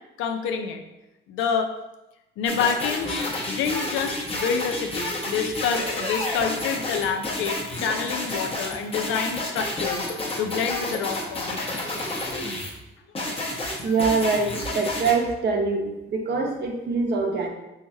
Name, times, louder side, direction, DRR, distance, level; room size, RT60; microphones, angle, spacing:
voice 1, 0.2-0.8 1.3-1.7 2.4-3.2 3.5-10.1 10.4-12.0 13.9-14.0, left 6 dB, 90° left, 5 dB, 0.5 m, -28 dB
sound 1, 2.5-12.7 13.2-15.1, left 2 dB, 30° left, 0.8 m, -30 dB
voice 2, 13.8-17.5, right 4 dB, 60° right, 1 dB, 0.8 m, -24 dB
3.1 x 2.8 x 3.4 m, 0.96 s
cardioid pair, 90°, 20 cm